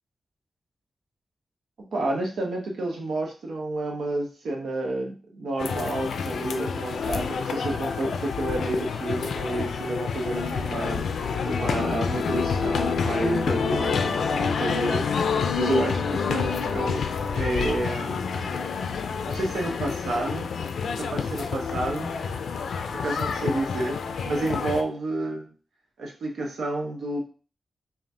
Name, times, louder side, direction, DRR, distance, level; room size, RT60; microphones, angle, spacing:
voice 1, 1.9-18.5 19.3-20.5 21.0-22.1 22.9-25.5 26.0-27.2, right 2 dB, 85° right, 0 dB, 0.9 m, -30 dB
sound 1, 5.6-24.8, left 5 dB, 90° left, 0.3 m, -28 dB
3.4 x 2.3 x 4.2 m, 0.35 s
cardioid pair, 55°, 0 cm